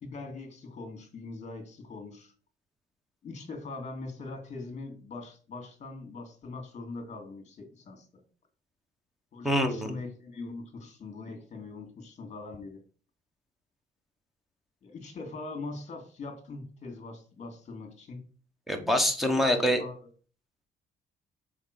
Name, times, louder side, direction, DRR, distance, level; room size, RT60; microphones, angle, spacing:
voice 1, 0.0-2.3 3.2-8.2 9.3-12.8 14.8-18.2 19.3-20.0, left 3 dB, 35° left, 5 dB, 2.3 m, -42 dB
voice 2, 9.4-9.9 18.7-19.8, equal, ahead, 5 dB, 1.2 m, -25 dB
6.5 x 4.5 x 6.6 m, 0.41 s
cardioid pair, 170°, 19 cm